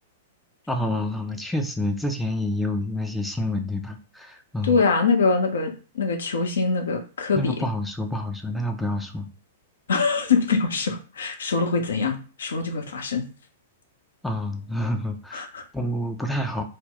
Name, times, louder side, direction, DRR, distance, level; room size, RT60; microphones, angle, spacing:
voice 1, 0.7-4.8 7.3-9.3 14.2-15.5 15.7-16.6, left 1 dB, 5° left, 4 dB, 0.3 m, -28 dB
voice 2, 4.6-7.6 9.9-13.3 15.3-15.6, left 4 dB, 65° left, 5 dB, 0.5 m, -24 dB
2.1 x 2.0 x 3.7 m, 0.35 s
figure-of-eight pair, 105°, 0 cm